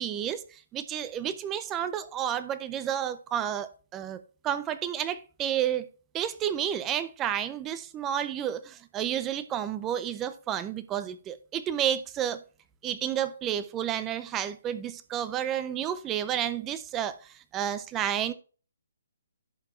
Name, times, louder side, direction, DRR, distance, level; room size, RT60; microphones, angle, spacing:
voice 1, 0.0-5.9 6.1-12.4 12.8-18.3, right 10 dB, 10° right, 0.5 m, -31 dB
11.0 x 6.1 x 3.1 m
hypercardioid pair, 170°, 0 cm